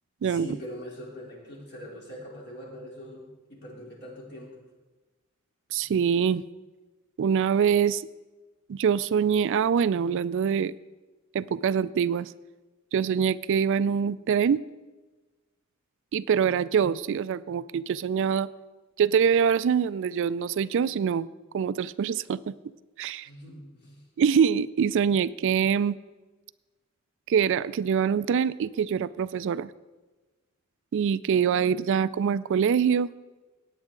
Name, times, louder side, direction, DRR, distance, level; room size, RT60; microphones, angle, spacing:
voice 1, 0.2-4.5 23.2-24.0, equal, 55° left, -2 dB, 3.3 m, -42 dB
voice 2, 5.7-6.4 7.2-8.1 8.7-10.8 11.3-12.3 12.9-14.6 16.1-18.5 19.0-21.3 21.5-22.5 23.0-23.3 24.2-26.0 27.3-29.7 30.9-33.1, right 7 dB, 60° right, 17 dB, 0.3 m, -24 dB
17.0 x 9.0 x 3.8 m, 1.2 s
head